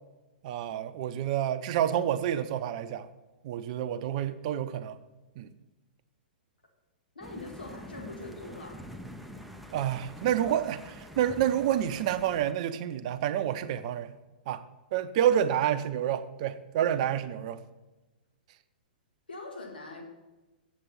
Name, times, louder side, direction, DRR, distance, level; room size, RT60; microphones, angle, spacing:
voice 1, 0.4-3.1 3.4-5.0 5.4-5.5 9.7-14.1 14.5-14.6 14.9-17.6, right 10 dB, 45° right, 11 dB, 0.6 m, -28 dB
voice 2, 7.2-8.9 19.3-20.0, left 2 dB, 80° left, 2 dB, 2.2 m, -42 dB
sound 1, 7.2-12.5, equal, ahead, 0.6 m, -46 dB
8.4 x 7.6 x 5.6 m, 1.1 s
figure-of-eight pair, 110°, 5 cm